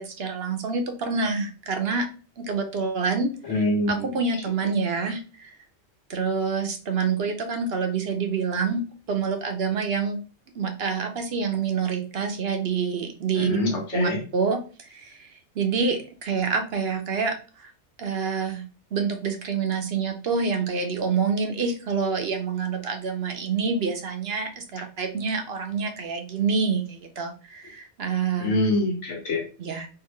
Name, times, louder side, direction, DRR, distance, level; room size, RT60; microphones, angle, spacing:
voice 1, 0.0-2.1 2.4-3.3 3.9-5.5 6.1-8.8 9.1-10.2 10.5-13.5 13.9-15.3 15.6-17.7 18.0-18.6 18.9-28.5 29.6-29.9, right 5 dB, 60° right, 5 dB, 0.9 m, -27 dB
voice 2, 3.5-4.1 13.4-14.2 28.4-29.4, left 1 dB, 90° left, 2 dB, 1.4 m, -24 dB
3.8 x 3.0 x 3.1 m, 0.35 s
omnidirectional pair, 1.2 m